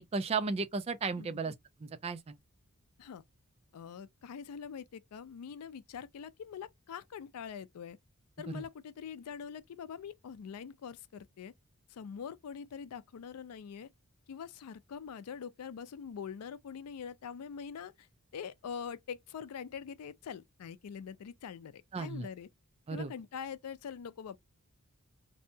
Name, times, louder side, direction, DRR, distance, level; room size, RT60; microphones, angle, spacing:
voice 1, 0.0-1.5 1.8-2.4 8.5-8.6 21.9-22.3 22.9-23.1, right 4 dB, 25° right, 0.3 m, -34 dB
voice 2, 3.7-8.0 8.4-11.5 11.9-13.9 14.3-18.1 18.3-22.5 22.9-24.4, left 7 dB, 90° left, 0.4 m, -44 dB
2.7 x 2.2 x 2.6 m
head